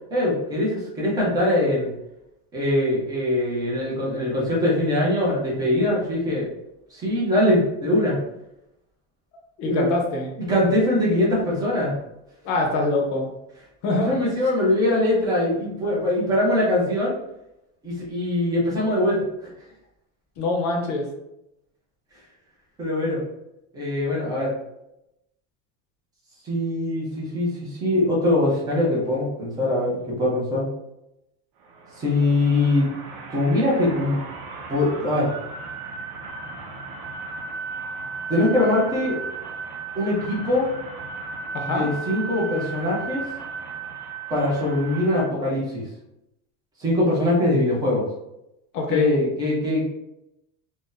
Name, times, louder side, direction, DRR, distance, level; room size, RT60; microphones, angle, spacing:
voice 1, 0.1-1.9 2.5-6.5 6.9-8.2 9.6-9.9 10.5-11.9 14.1-17.1 17.8-19.5 22.8-23.2 23.7-24.5 26.4-30.7 32.0-32.9 33.3-34.2 34.7-35.3 38.3-39.2 39.9-40.7 41.6-43.2 44.3-45.8 46.8-48.1 48.9-49.8, left 1 dB, 10° right, -5 dB, 0.3 m, -22 dB
voice 2, 9.6-10.3 12.4-13.3 13.8-14.1 20.4-21.1 41.5-41.9 48.7-49.1, left 2 dB, 40° left, 1 dB, 0.6 m, -24 dB
sound 1, 31.6-45.3, right 4 dB, 80° right, 0.7 m, -35 dB
2.6 x 2.1 x 3.7 m, 0.86 s
cardioid pair, 165°, 45 cm